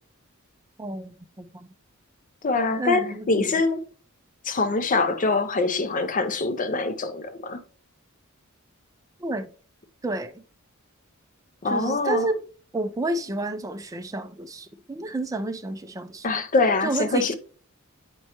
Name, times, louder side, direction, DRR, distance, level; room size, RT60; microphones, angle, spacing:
voice 1, 0.8-1.7 2.8-3.5 9.2-9.5 10.0-10.4 11.6-12.4 12.7-16.3 16.8-17.4, right 2 dB, 15° right, 0.4 m, -30 dB
voice 2, 2.4-3.8 4.4-7.6 11.6-12.3 16.2-17.4, left 3 dB, 40° left, 0.6 m, -24 dB
8.5 x 4.4 x 2.9 m
head